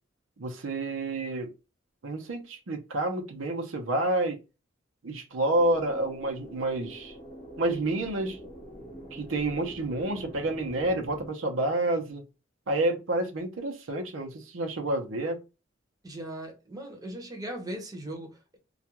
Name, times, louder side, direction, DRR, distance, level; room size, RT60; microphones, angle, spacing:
voice 1, 0.4-1.5 2.0-4.4 5.0-7.2 7.6-8.4 9.1-12.2 12.7-15.4, right 2 dB, 90° right, 0.7 m, -29 dB
sound 1, 5.5-11.3, equal, 35° left, 0.8 m, -45 dB
voice 2, 16.0-18.6, right 1 dB, 20° right, 0.7 m, -39 dB
2.4 x 2.2 x 2.8 m
head